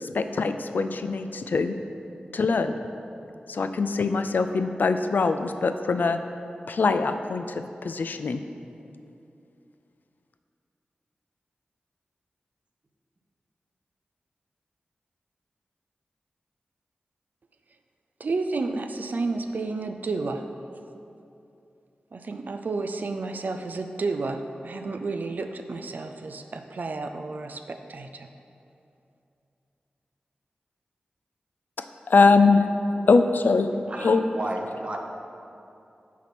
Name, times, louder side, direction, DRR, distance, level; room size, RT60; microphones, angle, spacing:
voice 1, 0.0-1.8 2.3-2.7 3.5-6.2 6.7-8.4 32.1-32.6 33.1-33.7 34.0-34.2, left 4 dB, 70° left, 9 dB, 0.3 m, -22 dB
voice 2, 18.2-20.4 22.1-28.3, right 3 dB, 60° right, 6 dB, 0.4 m, -31 dB
voice 3, 33.7-35.0, right 1 dB, 35° right, 2 dB, 0.8 m, -34 dB
5.8 x 4.3 x 6.0 m, 2.7 s
cardioid pair, 60°, 3 cm